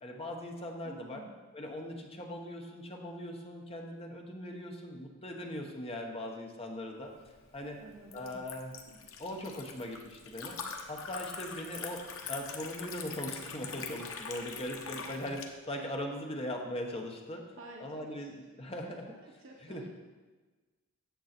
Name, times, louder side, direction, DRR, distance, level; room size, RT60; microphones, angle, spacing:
voice 1, 0.0-1.2 1.5-7.1 7.5-7.8 8.1-8.7 9.2-10.6 10.9-17.4 17.8-19.2 19.6-19.8, left 1 dB, 30° left, 1 dB, 1.1 m, -40 dB
voice 2, 0.8-1.3 7.7-8.5 8.9-9.0 17.5-18.4 18.9-20.0, right 2 dB, 65° right, -1 dB, 1.0 m, -52 dB
Liquid, 7.1-15.5, left 5 dB, 75° left, 1.0 m, -44 dB
9.4 x 7.2 x 4.4 m, 1.3 s
head